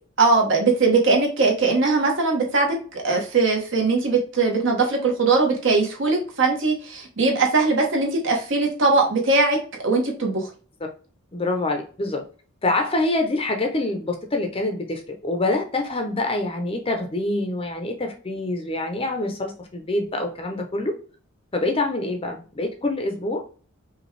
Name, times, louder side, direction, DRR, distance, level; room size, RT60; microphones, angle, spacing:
voice 1, 0.2-9.6 9.8-10.5, right 3 dB, 60° right, 1 dB, 1.2 m, -20 dB
voice 2, 11.3-12.2 12.6-20.9 21.5-23.4, left 2 dB, 25° left, 4 dB, 0.6 m, -25 dB
5.2 x 2.4 x 3.2 m, 0.39 s
head